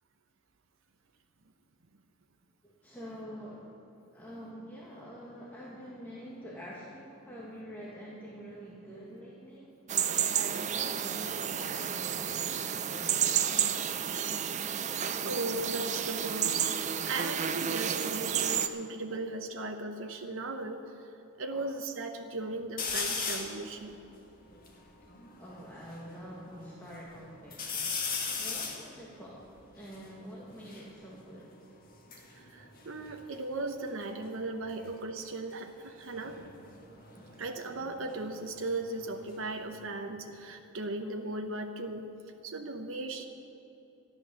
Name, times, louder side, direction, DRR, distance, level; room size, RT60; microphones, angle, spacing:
voice 1, 2.6-3.7 4.1-9.7 10.0-13.7 15.2-15.4 19.1-19.2 21.5-21.7 25.4-28.1 28.4-31.5 34.8-34.9 37.1-37.3, equal, 10° left, -6 dB, 1.6 m, -47 dB
sound 1, 9.9-18.7, right 8 dB, 35° right, 0.5 m, -31 dB
voice 2, 15.2-16.7 17.0-20.8 21.4-24.0 32.4-36.4 37.4-42.1 42.4-43.2, right 2 dB, 75° right, 4 dB, 0.9 m, -37 dB
sound 2, 22.8-23.6 24.2-24.3 24.4-26.0 26.5-27.1 27.5-30.9 31.8-33.7 34.0-34.5 36.0-38.7 39.0-39.8, left 5 dB, 45° left, 1.8 m, -38 dB
13.5 x 11.5 x 6.9 m, 2.8 s
head